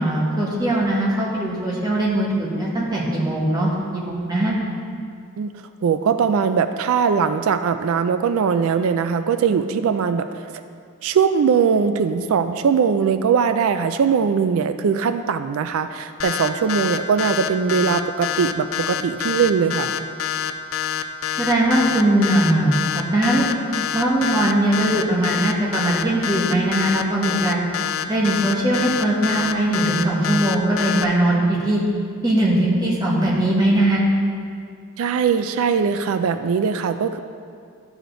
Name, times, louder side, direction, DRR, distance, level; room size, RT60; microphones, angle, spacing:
voice 1, 0.0-4.6 21.4-22.8 23.1-23.5 23.9-27.6 28.1-31.8 32.2-34.0, right 1 dB, 20° right, -5 dB, 1.3 m, -20 dB
voice 2, 5.8-10.5 11.0-19.9 35.0-37.2, right 6 dB, 75° right, 10 dB, 0.3 m, -20 dB
sound 1, 16.2-31.0, left 9 dB, 65° left, 0.4 m, -26 dB
11.5 x 5.0 x 3.9 m, 2.2 s
head